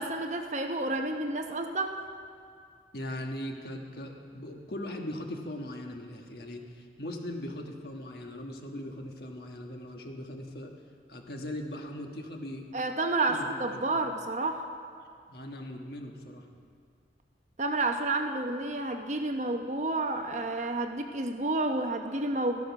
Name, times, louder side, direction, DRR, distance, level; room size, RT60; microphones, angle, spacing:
voice 1, 0.0-2.0 12.7-14.7 17.6-22.6, right 2 dB, 40° right, 5 dB, 0.9 m, -30 dB
voice 2, 2.9-10.7 11.1-12.7 13.3-14.0 15.3-16.5, left 1 dB, 60° left, 2 dB, 1.4 m, -39 dB
13.5 x 12.0 x 5.9 m, 2.2 s
head